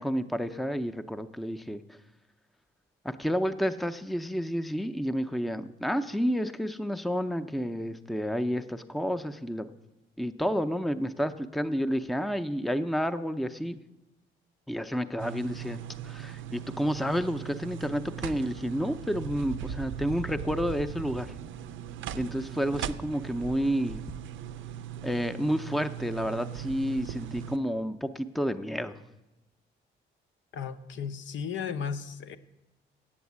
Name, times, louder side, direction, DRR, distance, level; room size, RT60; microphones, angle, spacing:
voice 1, 0.0-1.8 3.0-9.7 10.2-13.8 14.7-21.3 22.1-24.0 25.0-28.9, equal, ahead, 10 dB, 0.5 m, -30 dB
sound 1, 15.2-27.6, right 9 dB, 75° right, 0.5 m, -39 dB
voice 2, 30.5-32.4, left 7 dB, 75° left, 10 dB, 0.6 m, -35 dB
8.7 x 7.0 x 8.2 m, 1.0 s
cardioid pair, 90°, 20 cm